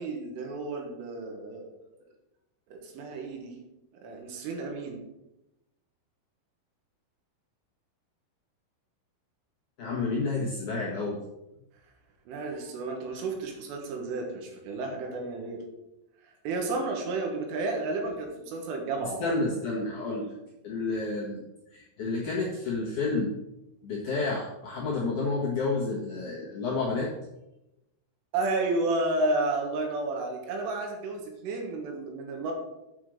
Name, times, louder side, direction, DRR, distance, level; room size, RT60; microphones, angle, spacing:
voice 1, 0.0-1.7 2.7-3.6 4.0-5.0 12.3-15.6 16.4-19.3 28.3-32.5, right 2 dB, 80° right, 2 dB, 4.1 m, -31 dB
voice 2, 9.8-11.2 19.2-20.3 20.6-21.4 21.7-23.3 23.8-27.1, left 3 dB, 60° left, -5 dB, 2.2 m, -30 dB
9.0 x 5.7 x 6.4 m, 0.92 s
omnidirectional pair, 5.7 m